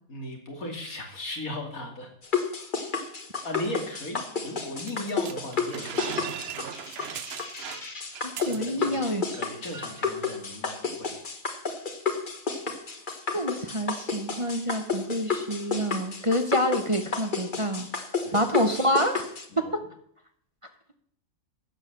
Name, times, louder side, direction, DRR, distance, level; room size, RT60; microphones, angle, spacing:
voice 1, 0.1-2.1 3.4-6.5 8.5-9.0 9.4-11.1 18.2-18.4 19.5-19.7, left 1 dB, 80° left, 2 dB, 3.0 m, -37 dB
sound 1, 2.2-19.5, left 5 dB, 35° left, 1.4 m, -32 dB
sound 2, 4.8-9.0 9.3-9.4 9.7-10.1, right 8 dB, 55° right, 0.9 m, -38 dB
voice 2, 8.2-9.4 13.3-17.9 18.3-19.2, equal, 25° right, 6 dB, 0.9 m, -27 dB
12.5 x 8.2 x 6.8 m, 0.66 s
omnidirectional pair, 1.5 m